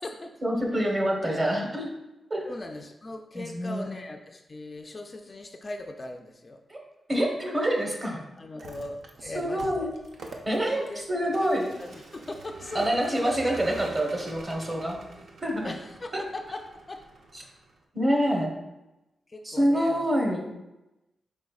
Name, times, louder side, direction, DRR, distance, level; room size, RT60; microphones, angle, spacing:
voice 1, 0.4-1.9 2.3-2.5 3.3-3.9 6.7-6.8 7.1-8.2 9.3-9.9 10.5-11.7 12.7-15.0 15.4-15.7 16.1-16.2 17.9-18.5 19.4-20.5, equal, 30° right, 1 dB, 1.1 m, -26 dB
voice 2, 2.5-6.6 8.4-9.9 10.6-11.3 11.8-13.3 15.6-17.0 18.1-18.4 19.3-20.1, left 2 dB, 35° left, 4 dB, 0.4 m, -39 dB
Vehicle, 8.4-17.8, right 3 dB, 75° right, 0.6 m, -46 dB
5.1 x 4.2 x 2.4 m, 0.95 s
cardioid pair, 80°, 0 cm